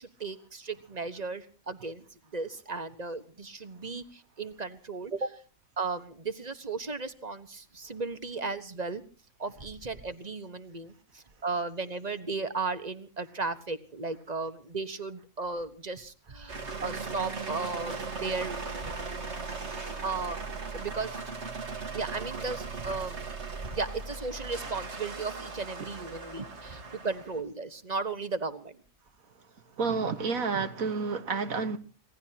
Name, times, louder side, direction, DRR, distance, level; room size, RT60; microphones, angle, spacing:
voice 1, 0.0-2.0 2.3-5.4 5.8-9.0 9.4-18.6 18.8-18.9 20.0-20.4 20.7-21.2 21.9-23.2 23.7-28.8, right 4 dB, 30° right, 11 dB, 1.4 m, -35 dB
sound 1, 16.5-27.4, right 4 dB, 55° right, 1.9 m, -38 dB
voice 2, 29.8-31.8, right 4 dB, 90° right, 9 dB, 2.0 m, -29 dB
27.0 x 18.0 x 2.9 m, 0.39 s
omnidirectional pair, 1.4 m